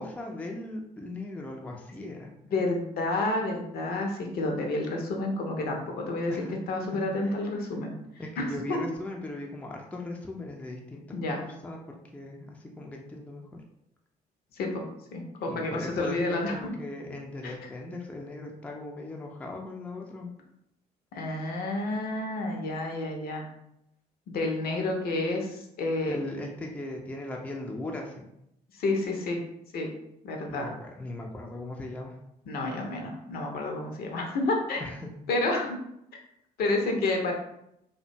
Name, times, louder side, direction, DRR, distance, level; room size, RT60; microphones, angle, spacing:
voice 1, 0.0-2.3 6.3-6.6 6.9-7.4 8.2-13.6 15.5-20.3 26.0-28.2 30.5-32.2 34.8-35.1, left 2 dB, 5° left, 0 dB, 0.4 m, -38 dB
voice 2, 2.5-6.3 6.7-7.9 8.4-8.8 11.1-11.4 14.6-14.8 15.1-16.7 17.4-17.7 21.1-23.5 24.3-26.2 28.8-29.4 29.7-29.9 30.2-30.7 32.5-34.8 35.3-35.8 36.6-37.3, left 2 dB, 50° left, 2 dB, 0.6 m, -30 dB
2.4 x 2.1 x 2.7 m, 0.80 s
figure-of-eight pair, 50°, 21 cm